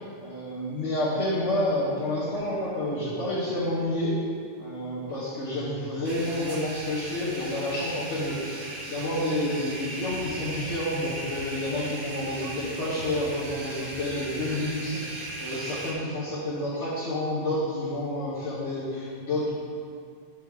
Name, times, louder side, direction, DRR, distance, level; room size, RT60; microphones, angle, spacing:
voice 1, 0.2-4.1 4.6-8.6 8.9-19.5, left 1 dB, 75° left, -10 dB, 1.5 m, -29 dB
sound 1, 6.0-15.9, right 1 dB, 50° right, 0.9 m, -38 dB
8.0 x 5.1 x 3.5 m, 2.2 s
omnidirectional pair, 1.2 m